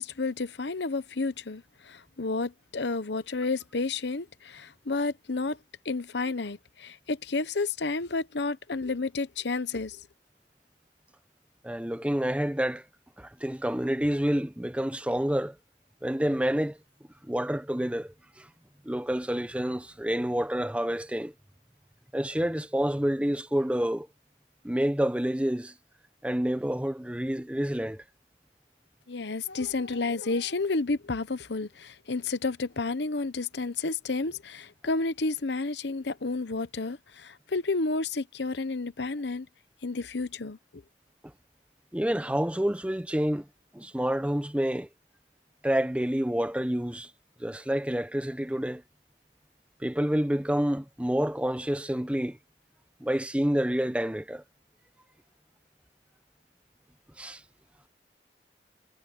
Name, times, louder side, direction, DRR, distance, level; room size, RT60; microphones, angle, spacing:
voice 1, 0.0-5.6 5.8-10.0 29.1-39.5 39.8-40.8, left 3 dB, 70° left, 0.9 m, -31 dB
voice 2, 11.6-12.8 13.2-15.6 16.0-16.8 17.3-18.5 18.8-21.3 22.1-24.1 24.6-25.7 26.2-28.0 41.9-43.5 43.7-44.9 45.6-47.1 47.4-48.8 49.8-52.4 53.0-54.4 57.2-57.4, equal, 5° right, 0.7 m, -28 dB
head